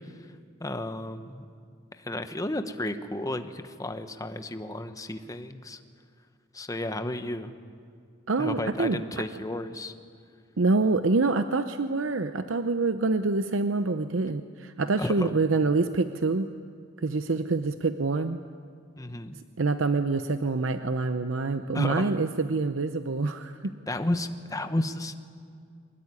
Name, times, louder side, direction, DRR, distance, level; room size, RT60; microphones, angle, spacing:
voice 1, 0.6-1.4 2.0-5.8 6.5-7.5 8.4-9.9 14.9-15.3 19.0-19.4 21.7-22.1 23.9-25.1, left 1 dB, 20° left, 8 dB, 1.1 m, -32 dB
voice 2, 8.3-9.0 10.6-16.5 17.0-18.4 19.6-23.7, right 3 dB, 90° right, 9 dB, 0.7 m, -26 dB
23.5 x 21.0 x 9.8 m, 2.2 s
head